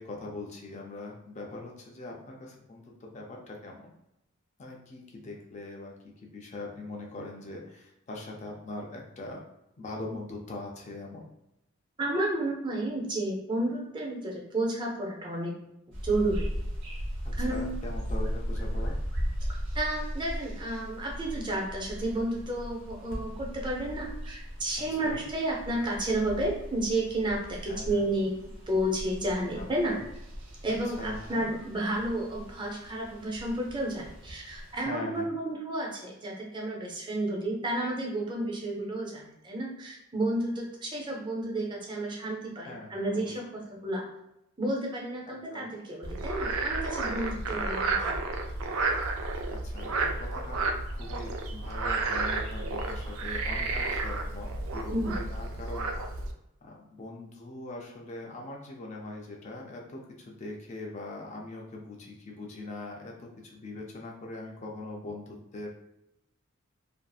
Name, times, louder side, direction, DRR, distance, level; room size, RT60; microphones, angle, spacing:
voice 1, 0.0-3.9 4.6-9.4 9.8-11.3 17.4-19.0 24.9-25.2 27.6-28.0 29.6-30.0 31.0-31.5 34.8-35.3 42.6-43.4 45.3-45.6 47.5-47.8 49.5-55.9 56.6-65.7, left 2 dB, 35° left, 0 dB, 0.4 m, -42 dB
voice 2, 12.0-15.6 16.0-16.5 17.4-17.7 19.7-30.0 30.6-44.0 44.6-48.1 54.9-55.1, right 1 dB, 20° right, -1 dB, 0.5 m, -31 dB
sound 1, 15.9-34.8, equal, 60° right, 0.7 m, -37 dB
Frog, 46.0-56.3, right 3 dB, 80° right, 0.4 m, -31 dB
2.6 x 2.4 x 2.3 m, 0.86 s
head